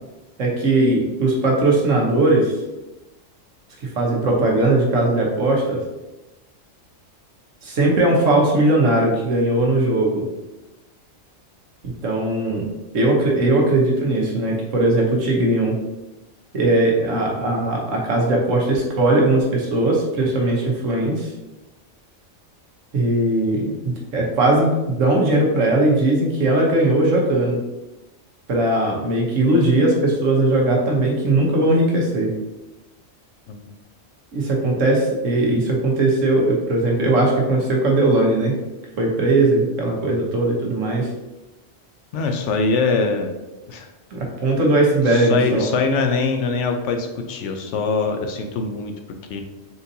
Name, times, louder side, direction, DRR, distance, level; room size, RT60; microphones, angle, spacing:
voice 1, 0.4-2.5 4.0-5.8 7.6-10.3 12.0-15.7 16.5-21.3 22.9-27.6 28.5-32.3 34.3-38.5 39.0-41.1 44.1-45.7, right 2 dB, 80° right, -1 dB, 1.4 m, -19 dB
voice 2, 42.1-43.3 43.7-43.9 45.1-48.9 49.3-49.4, left 4 dB, 70° left, 5 dB, 0.9 m, -23 dB
4.3 x 3.9 x 2.7 m, 1.0 s
omnidirectional pair, 1.3 m